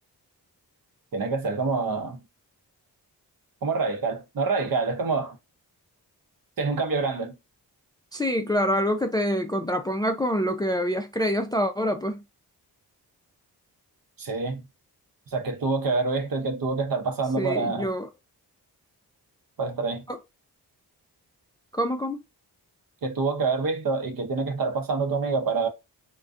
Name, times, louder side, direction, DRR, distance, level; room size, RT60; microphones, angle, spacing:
voice 1, 1.1-2.2 3.6-5.4 6.6-7.3 14.2-14.6 15.3-17.9 19.6-20.0 23.0-25.7, right 4 dB, 55° right, 0.7 m, -26 dB
voice 2, 8.1-12.2 17.4-18.1 20.1-20.2 21.7-22.2, equal, 10° left, 0.3 m, -26 dB
2.3 x 2.2 x 2.4 m
cardioid pair, 55°, 40 cm